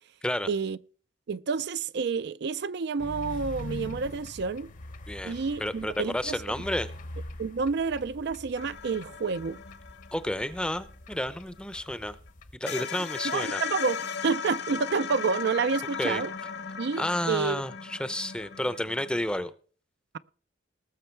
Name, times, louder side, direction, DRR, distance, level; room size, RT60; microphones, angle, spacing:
voice 1, 0.5-0.8 1.3-4.7 5.2-6.4 7.4-9.6 13.2-16.3 16.8-17.6, right 5 dB, 60° right, 0.4 m, -29 dB
sound 1, 3.0-12.6, left 1 dB, 45° left, 0.9 m, -43 dB
voice 2, 5.1-6.9 10.1-12.2 12.6-13.6 16.0-16.2 17.0-19.5, left 1 dB, 5° left, 0.6 m, -31 dB
sound 2, 8.6-11.9 12.3-12.4 12.7-19.4, left 7 dB, 60° left, 1.2 m, -37 dB
19.5 x 6.5 x 4.5 m
head